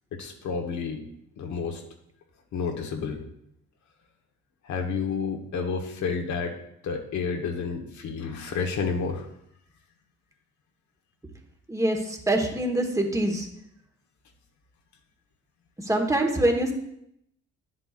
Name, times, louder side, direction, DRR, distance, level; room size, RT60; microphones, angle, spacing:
voice 1, 0.1-1.0 1.4-1.8 2.5-3.2 4.6-6.6 6.8-9.3, left 5 dB, 70° left, 3 dB, 1.3 m, -30 dB
voice 2, 11.7-13.4 15.9-16.7, right 1 dB, 10° right, 2 dB, 1.4 m, -24 dB
10.0 x 7.7 x 2.5 m, 0.76 s
cardioid pair, 90°, 30 cm